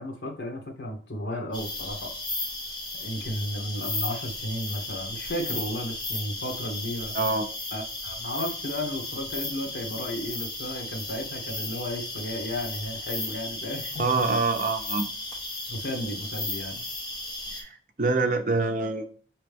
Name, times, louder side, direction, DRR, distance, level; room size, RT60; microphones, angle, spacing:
voice 1, 0.0-2.1 3.0-7.2 7.7-14.1 15.7-16.8, left 1 dB, 70° left, 2 dB, 1.2 m, -34 dB
sound 1, 1.5-17.6, left 2 dB, 25° left, 1.0 m, -35 dB
voice 2, 7.1-7.5 14.0-15.1 17.5-17.7 18.0-19.1, right 3 dB, 45° right, 5 dB, 0.6 m, -25 dB
4.8 x 3.0 x 3.4 m, 0.42 s
head